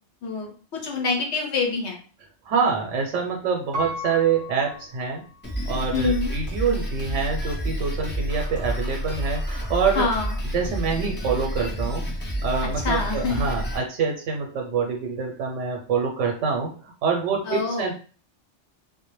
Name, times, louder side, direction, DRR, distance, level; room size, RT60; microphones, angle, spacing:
voice 1, 0.8-2.0 5.9-6.3 10.0-10.3 12.8-13.5 17.5-17.9, left 4 dB, 70° left, 1 dB, 0.9 m, -25 dB
voice 2, 2.4-5.2 5.7-10.1 10.5-12.0 12.4-17.9, right 5 dB, 90° right, 1 dB, 0.9 m, -26 dB
Piano, 3.7-5.7 6.3-6.4, left 1 dB, 55° right, 0.7 m, -35 dB
Drum kit, 5.4-13.8, equal, 15° left, 0.4 m, -29 dB
2.2 x 2.1 x 2.9 m, 0.38 s
omnidirectional pair, 1.2 m